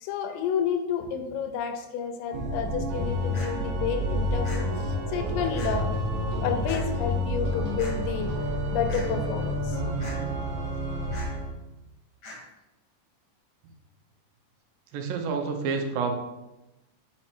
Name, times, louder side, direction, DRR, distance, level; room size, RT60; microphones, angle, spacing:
voice 1, 0.0-5.9 6.4-8.4 8.7-9.8, left 7 dB, 85° left, 6 dB, 2.2 m, -30 dB
Organ, 2.3-11.5, equal, 65° right, 2.0 m, -29 dB
sound 1, 3.3-3.5 4.4-4.6 5.6-5.7 6.7-6.8 7.8-7.9 8.9-9.1 10.0-10.2 11.1-11.3 12.2-12.4, left 2 dB, 45° left, 1.3 m, -41 dB
sound 2, 5.1-6.5 7.0-7.1 7.4-9.9, equal, 20° left, 1.1 m, -41 dB
voice 2, 14.9-16.1, right 5 dB, 80° right, 4 dB, 2.4 m, -28 dB
5.3 x 4.4 x 4.3 m, 0.99 s
omnidirectional pair, 4.0 m